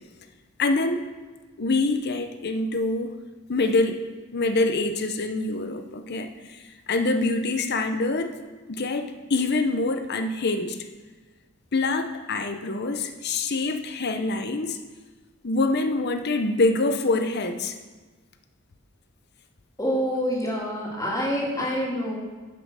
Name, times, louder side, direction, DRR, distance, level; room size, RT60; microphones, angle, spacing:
voice 1, 0.6-1.0 1.6-3.2 3.5-6.3 6.9-8.3 8.7-10.8 11.7-14.8 15.4-17.8, left 2 dB, 55° left, 8 dB, 0.8 m, -25 dB
voice 2, 19.8-22.1, equal, 20° left, -3 dB, 2.2 m, -26 dB
10.5 x 5.7 x 6.4 m, 1.3 s
head